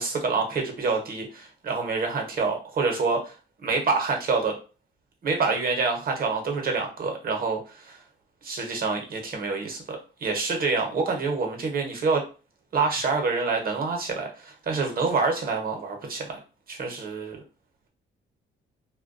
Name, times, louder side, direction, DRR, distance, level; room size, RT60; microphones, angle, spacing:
voice 1, 0.0-3.3 3.6-4.5 5.2-8.0 8.4-12.2 12.7-16.4 16.7-17.4, right 4 dB, 45° right, 3 dB, 0.8 m, -27 dB
2.2 x 2.2 x 2.5 m, 0.34 s
cardioid pair, 90°, 20 cm